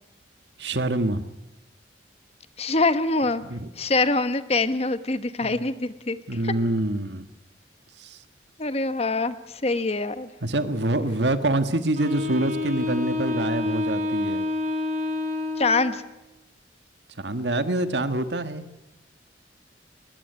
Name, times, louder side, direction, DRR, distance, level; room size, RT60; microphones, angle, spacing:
voice 1, 0.6-1.3 3.4-3.7 5.4-5.6 6.3-7.3 8.0-8.2 10.4-14.5 17.2-18.7, right 1 dB, 75° right, 10 dB, 1.7 m, -26 dB
voice 2, 2.6-3.4 3.8-6.2 6.4-6.5 8.6-10.3 15.6-16.0, left 3 dB, 35° left, 12 dB, 1.1 m, -24 dB
Wind instrument woodwind instrument, 11.9-16.1, left 2 dB, 45° right, 3.8 m, -28 dB
21.0 x 20.5 x 9.6 m, 1.0 s
head